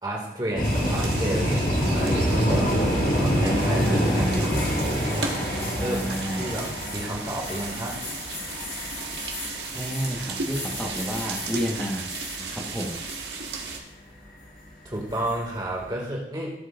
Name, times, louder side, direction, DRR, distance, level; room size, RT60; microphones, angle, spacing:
voice 1, 0.0-2.7 3.1-5.3 5.8-6.0 6.3-8.0 14.8-16.5, right 1 dB, 25° right, -2 dB, 2.1 m, -32 dB
sound 1, 0.6-12.4 12.7-13.2 15.1-15.5, equal, 50° left, 2.0 m, -27 dB
sound 2, 0.6-13.8, right 4 dB, 80° right, 1.6 m, -35 dB
voice 2, 3.8-4.5 5.8-6.5 9.7-12.0 12.4-13.0, equal, 5° left, -2 dB, 1.3 m, -31 dB
17.5 x 7.8 x 2.5 m, 0.84 s
head